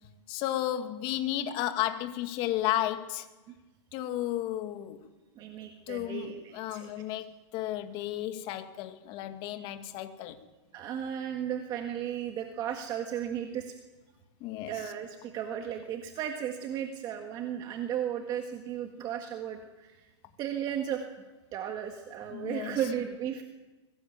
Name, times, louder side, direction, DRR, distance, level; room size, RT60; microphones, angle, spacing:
voice 1, 0.3-3.3 3.9-5.0 5.9-10.4 14.4-14.9 22.3-22.8, left 13 dB, 30° left, 2.1 m, -33 dB
voice 2, 5.4-6.9 10.7-13.7 14.7-20.1 20.4-21.0 21.5-23.4, right 9 dB, 25° right, 1.8 m, -35 dB
23.0 x 19.5 x 8.9 m
hypercardioid pair, 155°, 16 cm